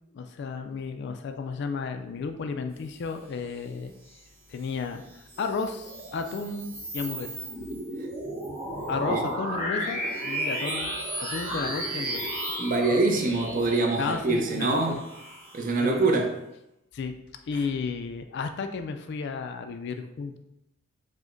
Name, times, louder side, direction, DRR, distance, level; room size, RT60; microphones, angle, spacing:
voice 1, 0.1-4.2 4.5-5.0 5.4-7.4 8.9-12.3 14.0-15.0 15.8-16.0 16.9-17.2 17.5-20.4, left 5 dB, 55° left, 0.3 m, -33 dB
sound 1, 5.1-16.0, right 1 dB, 20° right, 1.5 m, -34 dB
voice 2, 12.6-15.0 15.5-16.3, right 3 dB, 40° right, 0.6 m, -24 dB
4.9 x 2.1 x 3.7 m
head